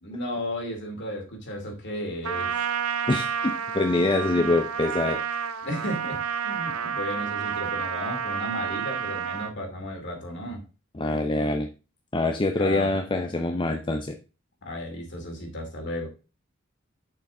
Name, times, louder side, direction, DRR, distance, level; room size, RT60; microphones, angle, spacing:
voice 1, 0.0-2.5 5.6-10.6 12.6-13.0 14.6-16.1, left 1 dB, 55° left, 2 dB, 2.6 m, -34 dB
Trumpet, 2.2-9.5, right 7 dB, 90° right, 0.7 m, -30 dB
voice 2, 3.1-5.2 10.9-11.7 12.1-14.2, left 2 dB, 25° left, 6 dB, 0.6 m, -25 dB
6.9 x 5.6 x 3.7 m, 0.31 s
head